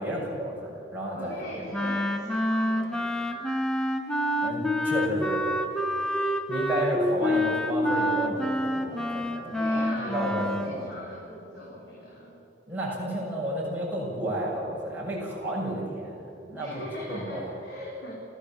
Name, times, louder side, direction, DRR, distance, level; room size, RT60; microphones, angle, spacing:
voice 1, 0.0-1.7 4.4-5.4 6.5-10.9 12.7-16.8 17.1-17.5, right 1 dB, 10° right, -6 dB, 7.2 m, -32 dB
voice 2, 1.1-3.4 9.6-12.4 16.5-18.2, equal, 75° left, -6 dB, 5.6 m, -40 dB
Wind instrument woodwind instrument, 1.7-10.7, equal, 5° left, 1.5 m, -27 dB
30.0 x 14.5 x 7.6 m, 2.8 s
head